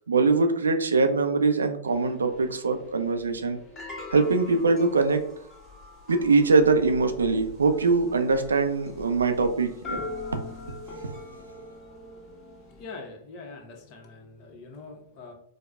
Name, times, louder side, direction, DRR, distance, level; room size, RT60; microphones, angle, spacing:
voice 1, 0.1-3.6 4.1-5.2 6.1-10.0, right 4 dB, 80° right, 7 dB, 0.4 m, -22 dB
sound 1, 1.9-12.8, left 3 dB, 25° left, 1.3 m, -43 dB
voice 2, 12.7-15.3, left 3 dB, 40° left, 2 dB, 0.9 m, -43 dB
4.6 x 2.1 x 2.3 m, 0.72 s
figure-of-eight pair, 100°, 0 cm